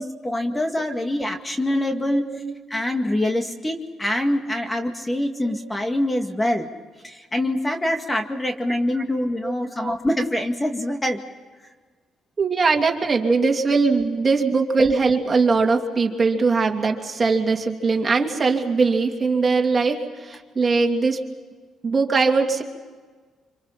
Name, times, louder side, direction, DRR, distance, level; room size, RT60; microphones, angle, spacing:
voice 1, 0.0-2.2 2.7-6.7 7.0-11.2 14.5-14.6, left 1 dB, 15° left, 5 dB, 2.1 m, -25 dB
voice 2, 2.1-2.5 5.4-5.6 8.9-9.0 9.4-9.9 12.4-21.2 21.8-22.6, right 4 dB, 35° right, 3 dB, 2.9 m, -21 dB
26.5 x 26.0 x 5.8 m, 1.4 s
cardioid pair, 90°, 0 cm